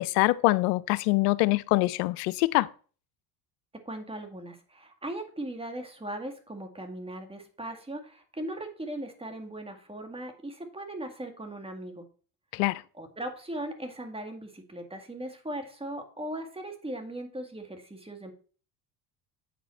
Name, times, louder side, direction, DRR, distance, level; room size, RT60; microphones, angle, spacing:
voice 1, 0.0-2.7 12.5-12.8, left 20 dB, 80° left, 0.6 m, -24 dB
voice 2, 3.7-12.0 12.9-18.3, right 1 dB, 10° right, 1.9 m, -38 dB
8.0 x 5.2 x 4.4 m
supercardioid pair, 80°, 46 cm